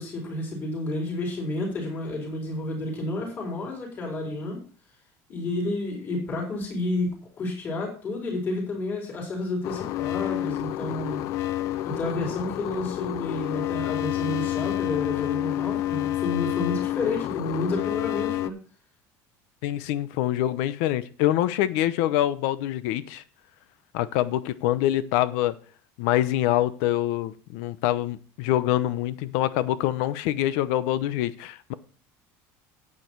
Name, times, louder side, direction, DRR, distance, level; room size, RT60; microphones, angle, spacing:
voice 1, 0.0-4.6 5.3-11.2 11.8-18.6, left 2 dB, 25° left, -1 dB, 4.3 m, -30 dB
sound 1, 9.6-18.5, left 13 dB, 45° left, 0.5 m, -29 dB
voice 2, 19.6-23.2 23.9-25.6 26.0-31.7, left 13 dB, 70° left, 15 dB, 0.8 m, -25 dB
9.6 x 8.8 x 4.6 m, 0.40 s
cardioid pair, 180°, 8 cm